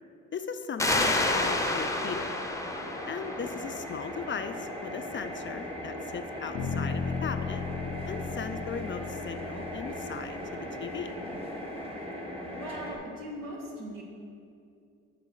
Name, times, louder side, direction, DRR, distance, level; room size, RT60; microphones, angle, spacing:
voice 1, 0.3-2.4 3.1-7.6 8.1-11.1, left 6 dB, 35° left, 10 dB, 0.4 m, -38 dB
sound 1, 0.8-4.2, left 2 dB, 10° left, 0.8 m, -29 dB
sound 2, 1.0-13.0, equal, 15° right, 1.5 m, -39 dB
sound 3, 6.5-10.5, left 5 dB, 85° left, 0.7 m, -35 dB
voice 2, 12.5-14.0, equal, 75° right, -1 dB, 1.5 m, -39 dB
5.8 x 5.2 x 6.1 m, 2.4 s
supercardioid pair, 55°, 33 cm